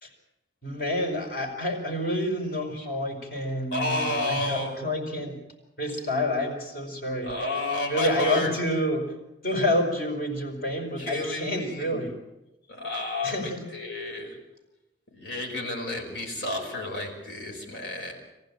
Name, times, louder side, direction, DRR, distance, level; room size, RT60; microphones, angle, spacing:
voice 1, 0.6-5.4 5.8-7.5 7.9-9.1 9.4-12.2 13.2-13.6, left 1 dB, 55° left, 3 dB, 5.3 m, -28 dB
voice 2, 3.7-4.8 7.2-8.5 11.0-12.0 12.7-14.4 15.1-18.1, left 2 dB, 80° left, -1 dB, 5.4 m, -31 dB
23.5 x 15.5 x 8.9 m, 0.95 s
head